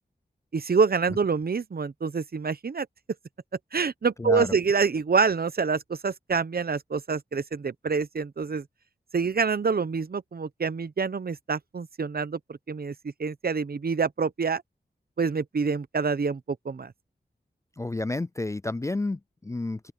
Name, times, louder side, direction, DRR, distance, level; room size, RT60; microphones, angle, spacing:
voice 1, 0.5-2.9 3.7-8.7 9.1-14.6 15.2-16.9, right 5 dB, 55° right, 0.9 m, -26 dB
voice 2, 4.2-4.5 17.8-19.9, left 2 dB, 15° left, 0.3 m, -30 dB
open air
cardioid pair, 50°, 18 cm